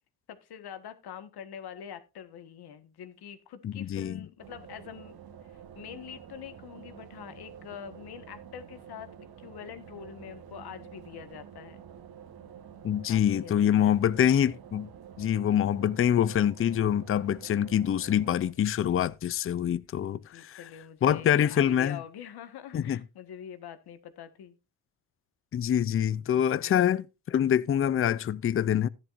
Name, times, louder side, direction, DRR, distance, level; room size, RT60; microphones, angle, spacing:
voice 1, 0.3-5.2 5.4-11.8 13.1-14.0 20.3-24.6 26.6-26.7, left 9 dB, 75° left, 1.6 m, -45 dB
voice 2, 3.6-4.2 12.8-14.9 15.2-20.6 21.0-22.0 22.7-23.0 25.5-28.9, left 10 dB, 35° left, 0.5 m, -25 dB
sound 1, 4.4-18.5, right 8 dB, 65° right, 1.3 m, -48 dB
13.5 x 10.5 x 2.6 m
cardioid pair, 110°, 39 cm